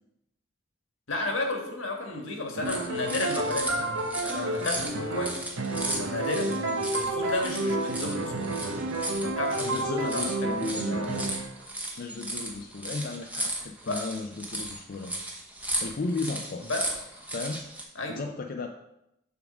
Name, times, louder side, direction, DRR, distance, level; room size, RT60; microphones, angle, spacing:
voice 1, 1.1-5.5 5.8-8.5 9.2-10.3 10.7-10.8 13.9-14.0 16.7-16.9 17.9-18.2, left 2 dB, 75° left, 2 dB, 1.5 m, -33 dB
sound 1, 2.5-11.5, right 2 dB, 80° right, 0.9 m, -30 dB
sound 2, 2.6-17.8, right 1 dB, 10° right, 0.9 m, -36 dB
voice 2, 9.6-11.3 12.0-15.2 15.8-16.7 17.3-17.7 18.1-18.7, left 3 dB, 45° left, 3 dB, 0.4 m, -35 dB
7.1 x 3.6 x 6.0 m, 0.84 s
head